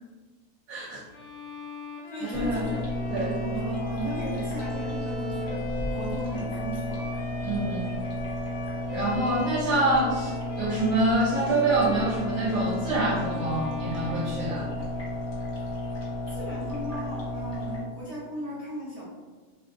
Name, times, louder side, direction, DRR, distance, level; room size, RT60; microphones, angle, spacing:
voice 1, 0.7-1.0 2.2-2.6 3.1-3.3 7.4-7.9 8.9-14.7, right 2 dB, 70° right, -4 dB, 0.9 m, -26 dB
Bowed string instrument, 1.1-15.2, left 2 dB, 85° left, 0.6 m, -41 dB
voice 2, 2.1-5.6 5.9-7.2 16.3-19.0, right 1 dB, 30° left, -10 dB, 0.7 m, -37 dB
sound 1, 2.3-17.8, left 1 dB, 55° left, 0.9 m, -33 dB
2.8 x 2.6 x 2.5 m, 1.4 s
omnidirectional pair, 1.8 m